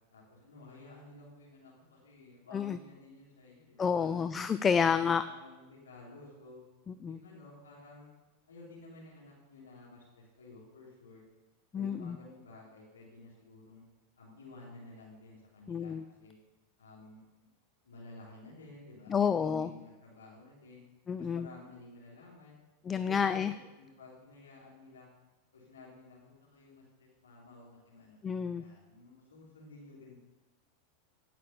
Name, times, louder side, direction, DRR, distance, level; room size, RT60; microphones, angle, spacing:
voice 1, 0.1-4.3 4.8-6.6 7.1-8.1 8.5-11.2 11.7-13.8 14.2-16.4 16.8-17.5 17.8-20.8 21.2-22.6 22.9-25.1 25.5-28.2 28.5-30.2, left 2 dB, 85° left, -7 dB, 3.3 m, -53 dB
voice 2, 3.8-5.2 7.0-7.2 11.7-12.2 15.7-16.0 19.1-19.7 21.1-21.5 22.9-23.5 28.2-28.6, left 6 dB, 25° left, 12 dB, 0.5 m, -29 dB
15.0 x 5.9 x 7.0 m, 1.1 s
hypercardioid pair, 95°, 0 cm